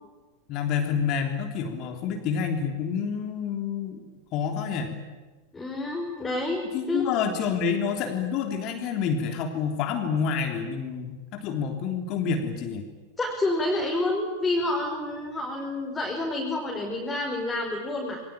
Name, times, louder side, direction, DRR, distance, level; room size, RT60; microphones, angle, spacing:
voice 1, 0.5-4.0 4.3-4.9 6.7-12.9, left 6 dB, 40° left, 4 dB, 3.4 m, -28 dB
voice 2, 5.5-7.0 13.2-18.2, left 2 dB, 10° left, -1 dB, 5.6 m, -28 dB
28.0 x 22.5 x 9.0 m, 1.3 s
figure-of-eight pair, 90°, 0 cm